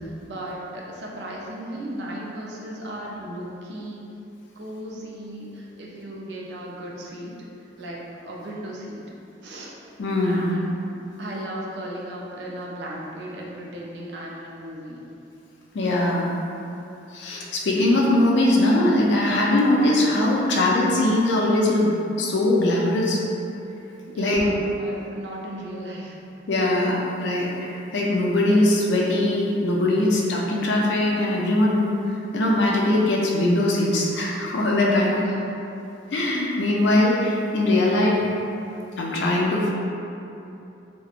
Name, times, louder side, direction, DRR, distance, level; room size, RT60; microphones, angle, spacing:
voice 1, 0.0-4.0 4.6-7.3 7.6-9.0 9.4-9.7 10.2-10.9 11.2-15.0 24.1-26.2 35.0-35.4, right 1 dB, 65° right, -3 dB, 0.4 m, -36 dB
voice 2, 10.0-10.5 15.7-16.3 17.1-21.9 22.2-23.2 24.2-24.4 26.5-31.9 32.3-35.2 36.1-38.2 39.0-39.7, left 1 dB, 70° left, -3 dB, 0.4 m, -21 dB
2.9 x 2.1 x 2.4 m, 2.8 s
head